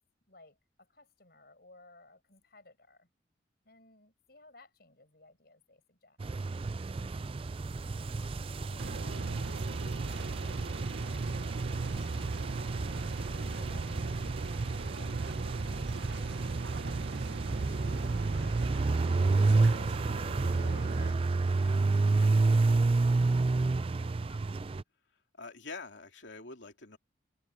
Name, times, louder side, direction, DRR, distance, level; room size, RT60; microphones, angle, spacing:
voice 1, 0.3-3.1 3.6-6.2 7.9-12.5 13.0-17.8 19.1-24.5, left 2 dB, 55° left, 6.3 m, -59 dB
sound 1, 6.2-24.8, right 3 dB, 30° right, 0.3 m, -30 dB
voice 2, 7.0-7.3 18.3-18.6 25.4-27.0, left 3 dB, 75° left, 2.8 m, -46 dB
sound 2, 8.8-21.1, right 3 dB, 65° right, 0.7 m, -38 dB
head